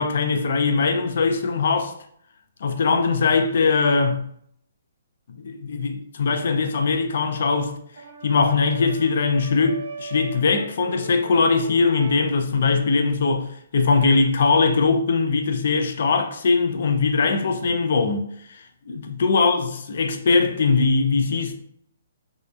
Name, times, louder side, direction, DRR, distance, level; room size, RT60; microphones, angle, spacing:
voice 1, 0.0-1.9 2.6-4.2 5.4-7.8 8.2-18.2 18.5-21.5, left 4 dB, 55° left, 0.3 m, -21 dB
Brass instrument, 6.9-12.3, right 2 dB, 85° right, 0.6 m, -39 dB
2.7 x 2.1 x 2.2 m
hypercardioid pair, 170°, 0 cm